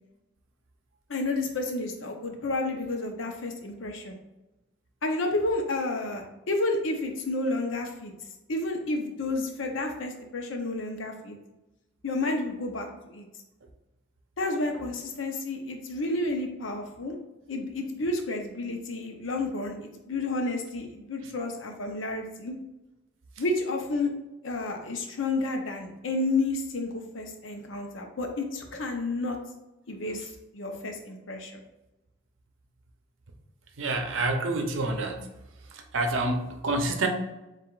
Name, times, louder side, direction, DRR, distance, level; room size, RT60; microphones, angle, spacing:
voice 1, 1.1-4.2 5.0-8.1 8.5-11.4 12.0-13.3 14.4-17.1 17.5-22.5 23.4-24.1 24.4-29.4 29.9-30.2 30.5-31.6, left 2 dB, 85° left, 3 dB, 0.7 m, -31 dB
voice 2, 33.8-35.2 35.7-37.1, right 2 dB, 90° right, 4 dB, 0.6 m, -28 dB
7.4 x 2.5 x 2.4 m, 1.0 s
head